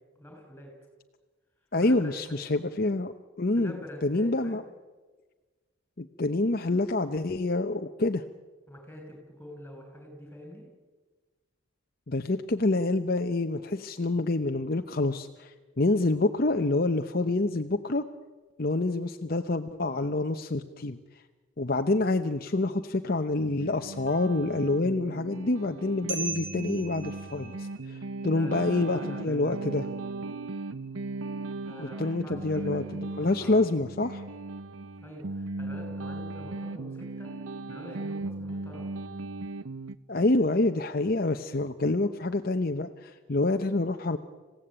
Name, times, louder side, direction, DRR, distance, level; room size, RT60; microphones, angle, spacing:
voice 1, 0.2-0.7 1.8-2.1 2.7-2.8 3.5-4.7 8.7-10.7 28.3-29.8 31.6-32.9 33.2-33.5 35.0-37.3 37.7-38.9, left 1 dB, 10° left, 2 dB, 6.9 m, -46 dB
voice 2, 1.7-3.8 4.0-4.6 6.0-8.2 12.1-18.0 18.6-21.0 21.6-29.9 31.8-34.2 40.1-44.2, left 2 dB, 45° left, 6 dB, 0.8 m, -27 dB
sound 1, 22.1-22.7 26.1-31.8, right 5 dB, 65° right, 3.6 m, -42 dB
sound 2, 23.4-39.9, right 2 dB, 85° right, 0.8 m, -38 dB
27.0 x 16.5 x 8.9 m, 1.3 s
head